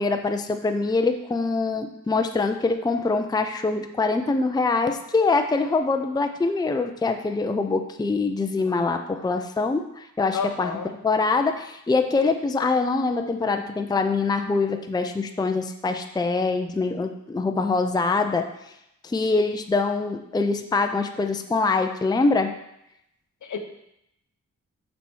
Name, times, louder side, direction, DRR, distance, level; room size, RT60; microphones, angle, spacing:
voice 1, 0.0-10.7 11.0-18.5 19.0-22.5, left 3 dB, 15° left, 6 dB, 0.5 m, -24 dB
voice 2, 10.3-10.9 23.4-23.6, left 5 dB, 70° left, 6 dB, 1.0 m, -30 dB
7.3 x 4.3 x 6.2 m, 0.82 s
wide cardioid pair, 105°, 31 cm